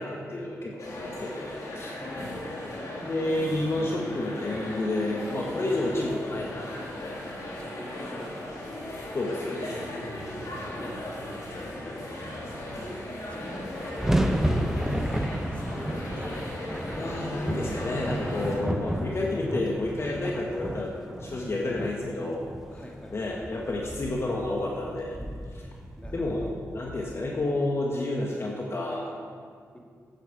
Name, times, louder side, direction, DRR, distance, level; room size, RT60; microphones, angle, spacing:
voice 1, 0.0-1.9 3.0-7.2 9.1-9.8 11.5-12.8 17.0-22.5 23.1-25.2 25.5-25.7 26.1-29.1, left 2 dB, 45° left, -1 dB, 1.3 m, -30 dB
sound 1, 0.8-18.6, left 1 dB, 75° left, 2.3 m, -37 dB
voice 2, 1.9-2.4 7.5-8.5 10.3-11.0 11.6-12.1 13.3-15.2 15.5-16.4 22.7-23.2 26.0-26.6 27.0-27.2 29.7-29.8, equal, 20° left, -1 dB, 2.0 m, -45 dB
sound 2, 13.1-27.5, right 1 dB, 5° right, 0.7 m, -32 dB
10.5 x 8.1 x 4.8 m, 2.1 s
cardioid pair, 55°, 6 cm